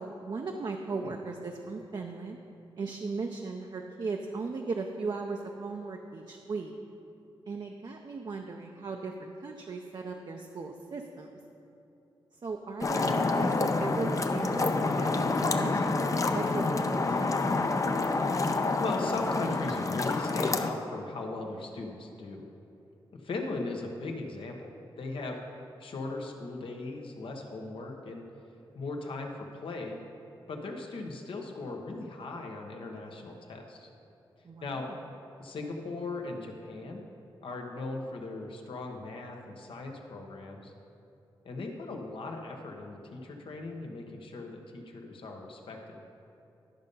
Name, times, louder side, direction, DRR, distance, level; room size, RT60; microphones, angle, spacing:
voice 1, 0.0-2.4 2.8-6.7 7.5-11.3 12.4-17.3 34.4-35.0, right 4 dB, 50° right, 2 dB, 0.6 m, -37 dB
sound 1, 12.8-20.7, left 3 dB, 40° left, 0.6 m, -28 dB
voice 2, 18.8-22.5 23.2-25.4 25.8-28.2 28.7-30.0 30.5-33.9 34.6-34.9 35.4-37.0 37.4-40.7 41.4-46.0, left 3 dB, 75° left, 2 dB, 1.1 m, -38 dB
11.5 x 5.3 x 5.4 m, 2.8 s
cardioid pair, 70°, 9 cm